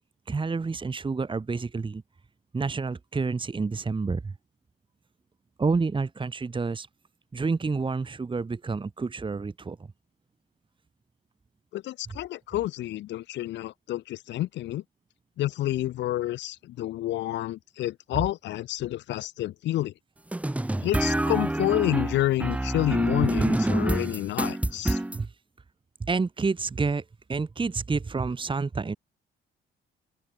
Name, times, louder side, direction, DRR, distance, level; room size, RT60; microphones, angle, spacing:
voice 1, 0.3-2.0 2.5-4.3 5.6-6.9 7.3-9.8 12.1-12.2 25.1-25.3 26.0-27.0 27.3-29.0, right 4 dB, 25° right, 1.6 m, -29 dB
voice 2, 11.7-14.8 15.4-19.9 20.8-25.0, left 14 dB, 65° left, 0.4 m, -29 dB
sound 1, 20.3-25.2, right 1 dB, 5° right, 0.6 m, -27 dB
open air
cardioid pair, 90°, 20 cm